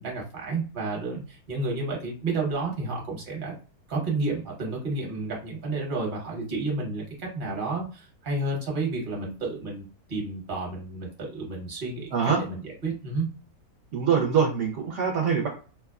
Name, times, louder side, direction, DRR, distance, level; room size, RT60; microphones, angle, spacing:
voice 1, 0.0-3.5 3.9-12.1 12.4-13.3, right 3 dB, 40° right, -2 dB, 1.0 m, -31 dB
voice 2, 12.1-12.4 13.9-15.5, right 6 dB, 65° right, 0 dB, 0.8 m, -24 dB
2.8 x 2.2 x 2.3 m, 0.37 s
omnidirectional pair, 1.7 m